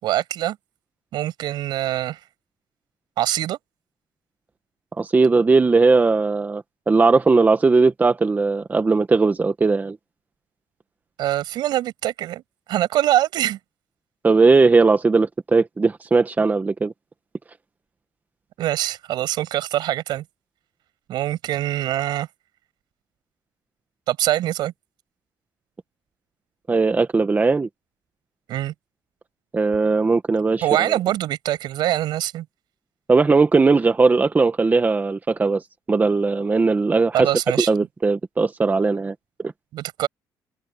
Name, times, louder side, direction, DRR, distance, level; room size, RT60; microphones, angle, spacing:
voice 1, 0.0-0.6 1.1-2.2 3.2-3.6 11.2-12.4 12.7-13.6 18.6-20.2 21.1-22.3 24.1-24.7 28.5-28.7 30.6-32.4 37.1-37.7 39.7-40.1, right 13 dB, 75° right, 6.5 m, -23 dB
voice 2, 5.0-10.0 14.2-16.9 26.7-27.7 29.5-31.0 33.1-35.6 35.9-37.3 37.7-39.1, right 4 dB, 20° right, 1.4 m, -18 dB
open air
cardioid pair, 110°, 8 cm